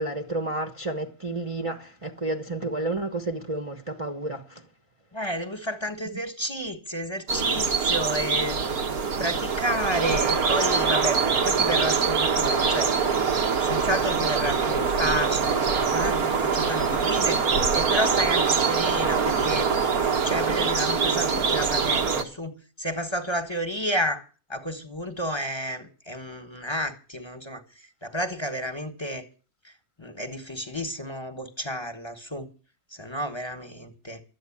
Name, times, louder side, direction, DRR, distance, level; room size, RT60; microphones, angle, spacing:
voice 1, 0.0-4.6, right 2 dB, 25° right, 1.1 m, -31 dB
voice 2, 5.1-8.6 9.2-12.9 13.6-17.4 17.7-19.7 20.2-24.2 24.5-29.2 29.6-29.7 30.0-32.5 32.9-34.2, equal, 20° left, 1.5 m, -31 dB
sound 1, 7.3-22.2, right 5 dB, 85° right, 2.0 m, -24 dB
13.0 x 8.8 x 8.6 m
omnidirectional pair, 1.5 m